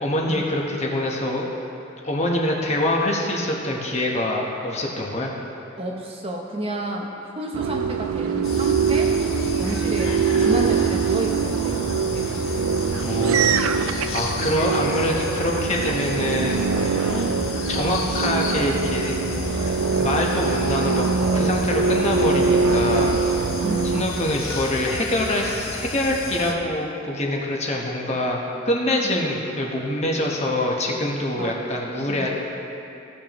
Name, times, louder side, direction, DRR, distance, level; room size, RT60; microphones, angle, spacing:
voice 1, 0.0-1.5 2.0-5.3 13.0-17.1 17.7-19.1 20.0-21.0 21.3-23.2 23.9-28.4 28.6-32.3, left 1 dB, 30° left, -1 dB, 1.1 m, -25 dB
voice 2, 5.8-9.2 9.5-12.6 17.1-17.4 23.6-23.9 29.0-29.2 31.4-31.5 32.1-32.3, right 1 dB, 25° right, 0 dB, 0.7 m, -31 dB
sound 1, 7.5-24.0, right 5 dB, 85° right, 0.4 m, -23 dB
sound 2, 8.4-26.5, left 2 dB, 75° left, 1.2 m, -32 dB
17.0 x 6.9 x 3.1 m, 2.9 s
head